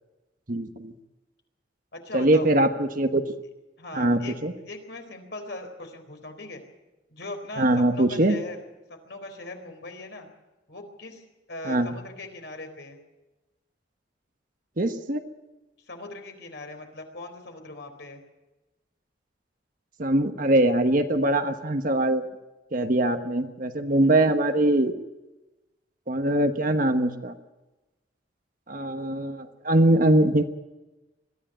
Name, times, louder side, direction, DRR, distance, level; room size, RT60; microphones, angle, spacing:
voice 1, 0.5-0.9 2.1-3.2 3.9-4.5 7.6-8.4 11.6-11.9 14.8-15.2 20.0-22.2 22.7-24.9 26.1-27.3 28.7-30.4, right 1 dB, 50° right, 7 dB, 1.2 m, -22 dB
voice 2, 1.9-2.5 3.8-4.4 4.7-6.6 7.1-8.6 9.0-10.3 10.7-11.2 11.5-13.0 15.9-18.2 24.0-24.2, left 2 dB, 65° left, 5 dB, 4.1 m, -39 dB
22.0 x 14.0 x 8.9 m, 1.1 s
head